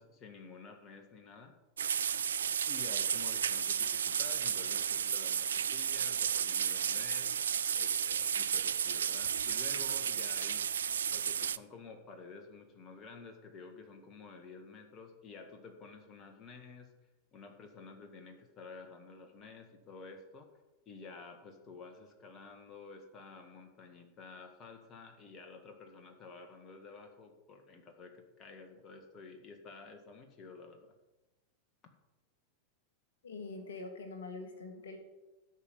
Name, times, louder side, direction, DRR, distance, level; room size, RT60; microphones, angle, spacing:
voice 1, 0.0-1.5 2.7-7.3 7.8-10.7 11.1-16.9 17.3-20.5 20.9-30.9, left 4 dB, 30° left, 4 dB, 1.7 m, -51 dB
sound 1, 1.8-11.6, right 8 dB, 65° right, 0.3 m, -33 dB
voice 2, 33.2-35.0, left 3 dB, 65° left, 5 dB, 1.5 m, -44 dB
13.0 x 5.5 x 7.0 m, 1.1 s
figure-of-eight pair, 90°, 0 cm